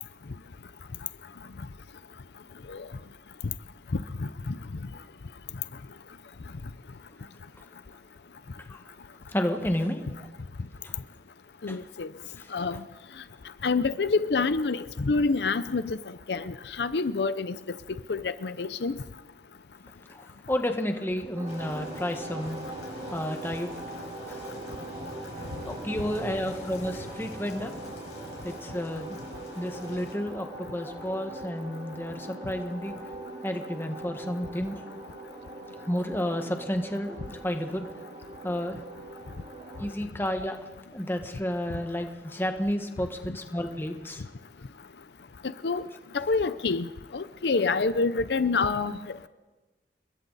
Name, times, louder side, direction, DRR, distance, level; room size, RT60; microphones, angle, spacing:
voice 1, 9.3-10.0 10.8-10.9 11.7-11.8 12.4-12.5 20.1-22.6 23.1-24.6 25.7-27.7 28.4-29.2 29.6-32.9 33.4-34.8 35.9-37.9 38.4-38.8 39.8-40.6 40.9-44.2, equal, 15° left, 5 dB, 1.6 m, -31 dB
voice 2, 11.6-12.1 12.5-12.8 13.6-16.0 16.3-17.5 18.1-18.9 45.6-45.8 46.1-46.9 47.1-48.9, left 4 dB, 70° left, 14 dB, 0.6 m, -26 dB
sound 1, 21.4-39.9, right 2 dB, 40° right, 3.5 m, -42 dB
sound 2, 21.5-30.1, left 1 dB, 40° left, 5.8 m, -44 dB
30.0 x 21.5 x 4.2 m, 1.3 s
head